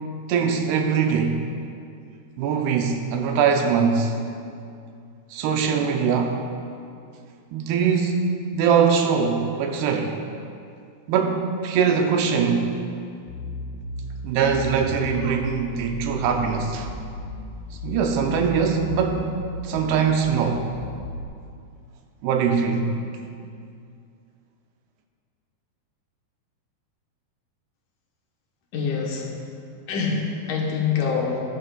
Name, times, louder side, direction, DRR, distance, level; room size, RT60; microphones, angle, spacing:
voice 1, 0.3-1.4 2.4-4.2 5.3-6.4 7.5-10.2 11.1-12.8 14.2-16.9 17.8-19.4 19.6-20.7 22.2-22.9, right 6 dB, 85° right, 3 dB, 2.7 m, -22 dB
sound 1, 13.2-21.2, left 1 dB, 85° left, 1.8 m, -35 dB
voice 2, 28.7-29.3 29.9-31.4, left 5 dB, 65° left, -1 dB, 2.2 m, -25 dB
15.5 x 10.5 x 2.3 m, 2.4 s
omnidirectional pair, 4.6 m